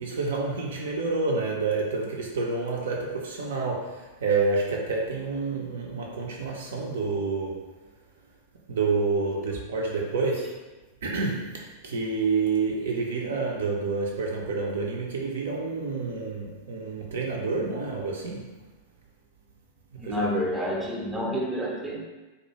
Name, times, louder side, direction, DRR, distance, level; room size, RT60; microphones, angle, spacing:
voice 1, 0.0-7.7 8.7-10.6 11.0-18.6 20.0-20.3, right 4 dB, 60° right, -1 dB, 0.4 m, -28 dB
voice 2, 20.0-22.0, equal, 5° right, -2 dB, 0.5 m, -29 dB
2.3 x 2.1 x 2.8 m, 1.2 s
figure-of-eight pair, 90°, 0 cm